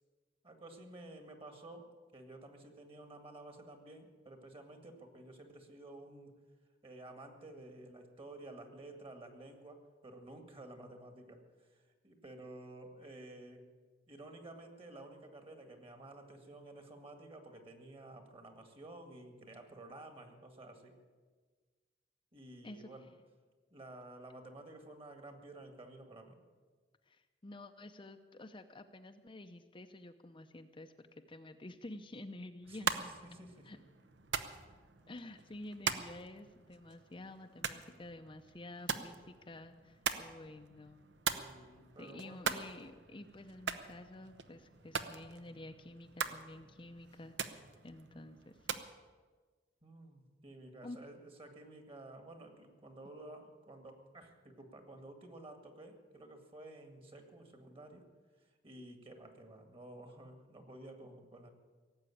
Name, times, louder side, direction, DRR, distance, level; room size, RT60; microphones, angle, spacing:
voice 1, 0.4-6.4 6.8-13.6 14.1-21.0 22.3-23.1 23.7-26.4 32.7-33.8 41.3-42.4 49.8-58.1 58.4-61.5, right 2 dB, 30° right, 5 dB, 2.0 m, -52 dB
voice 2, 27.1-32.9 33.6-33.8 35.1-41.0 42.0-48.7 50.8-51.0, left 1 dB, 30° left, 6 dB, 0.6 m, -50 dB
sound 1, 32.6-48.9, right 6 dB, 70° right, 0.9 m, -42 dB
17.5 x 8.1 x 9.9 m, 1.4 s
head